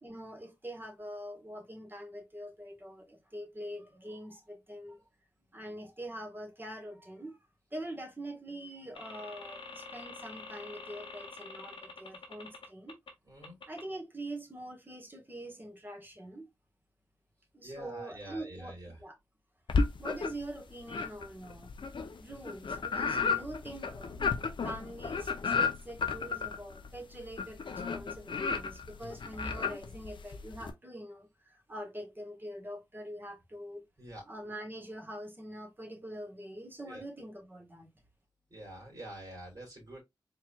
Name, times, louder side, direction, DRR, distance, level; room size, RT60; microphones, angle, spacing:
voice 1, 0.0-5.0 5.5-7.4 7.7-13.0 13.7-16.5 17.5-19.2 20.0-21.7 22.2-24.2 24.6-33.9 34.3-37.9, right 1 dB, 25° right, 1.6 m, -44 dB
sound 1, 8.9-13.1 13.4-13.8, left 3 dB, 85° left, 1.1 m, -46 dB
voice 2, 13.3-13.6 17.6-19.0 34.0-34.2 36.8-37.0 38.5-40.0, right 1 dB, 45° right, 2.5 m, -46 dB
sound 2, 19.7-20.5 20.9-30.7, left 5 dB, 70° left, 0.7 m, -33 dB
4.5 x 3.3 x 2.4 m
cardioid pair, 50°, 9 cm